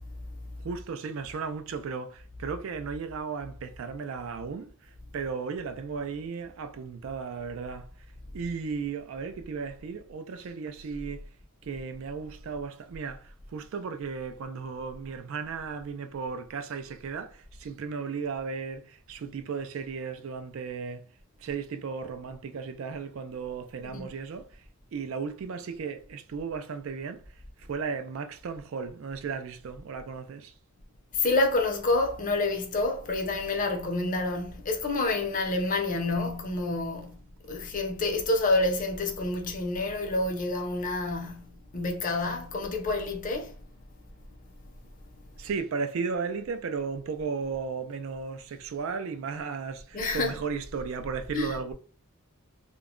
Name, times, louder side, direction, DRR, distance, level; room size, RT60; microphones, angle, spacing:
voice 1, 0.6-7.9 8.3-11.3 11.6-21.1 21.4-24.6 24.9-27.2 27.6-30.5 45.4-51.7, right 5 dB, 65° right, 0.3 m, -35 dB
voice 2, 31.1-43.5 49.9-50.3 51.3-51.6, left 2 dB, 40° left, 0.6 m, -28 dB
2.2 x 2.1 x 3.6 m
head